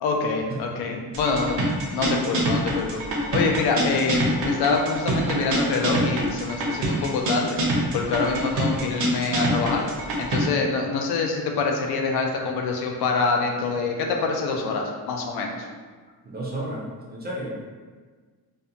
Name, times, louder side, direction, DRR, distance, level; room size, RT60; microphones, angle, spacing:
voice 1, 0.0-3.0 3.3-7.6 7.9-9.9 10.2-15.6, left 4 dB, 80° left, 2 dB, 0.5 m, -25 dB
sound 1, 1.1-10.5, right 1 dB, 70° right, 0.6 m, -25 dB
voice 2, 16.3-16.8 17.1-17.7, right 1 dB, 25° right, -4 dB, 0.3 m, -32 dB
2.6 x 2.1 x 2.5 m, 1.4 s
wide cardioid pair, 180°, 38 cm